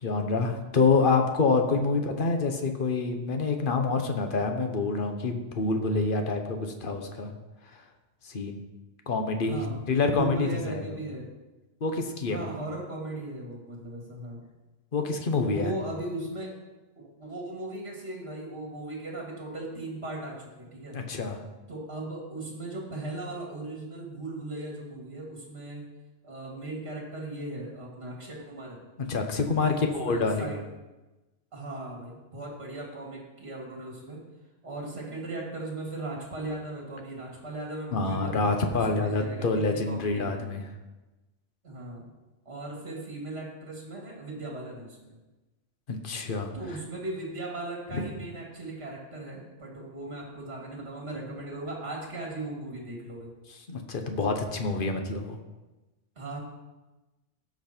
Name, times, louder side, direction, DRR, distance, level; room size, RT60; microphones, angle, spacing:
voice 1, 0.0-7.3 7.7-7.8 8.2-8.6 9.1-11.0 11.8-12.5 14.9-15.7 20.9-21.4 29.0-30.5 37.9-40.6 45.9-46.5 47.9-48.1 53.7-55.4, left 4 dB, 45° left, 5 dB, 1.3 m, -27 dB
voice 2, 9.4-11.3 12.3-14.5 15.3-16.6 17.0-21.0 21.7-25.8 26.2-28.8 29.7-30.6 31.5-34.2 34.6-38.6 38.9-40.5 41.6-42.1 42.4-45.1 46.5-53.3 56.2-56.4, right 2 dB, 55° right, -2 dB, 2.8 m, -38 dB
17.0 x 6.0 x 4.5 m, 1.1 s
omnidirectional pair, 1.2 m